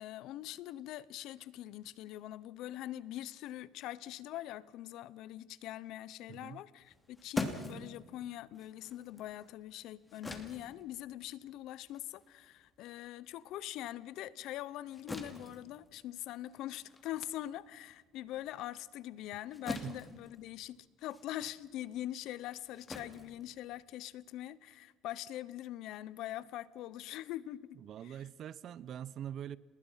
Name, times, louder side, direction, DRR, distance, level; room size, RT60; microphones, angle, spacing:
voice 1, 0.0-28.2, left 13 dB, 75° left, 0.9 m, -43 dB
voice 2, 6.3-6.6 19.7-19.9 27.8-29.6, right 10 dB, 55° right, 0.8 m, -44 dB
sound 1, 6.8-13.6 14.0-24.2, left 2 dB, 15° left, 2.8 m, -45 dB
30.0 x 20.0 x 5.8 m
cardioid pair, 110°, 0 cm